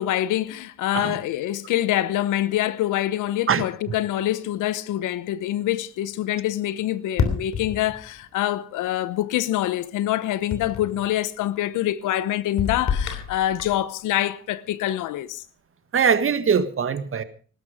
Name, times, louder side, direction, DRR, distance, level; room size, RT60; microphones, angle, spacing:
voice 1, 0.0-15.4, left 13 dB, 85° left, 1.0 m, -25 dB
sound 1, 7.2-8.2 10.5-11.0 12.6-13.9, left 6 dB, 65° left, 3.2 m, -28 dB
voice 2, 15.9-17.2, right 6 dB, 45° right, 1.7 m, -21 dB
19.5 x 12.0 x 5.1 m
cardioid pair, 90°, 30 cm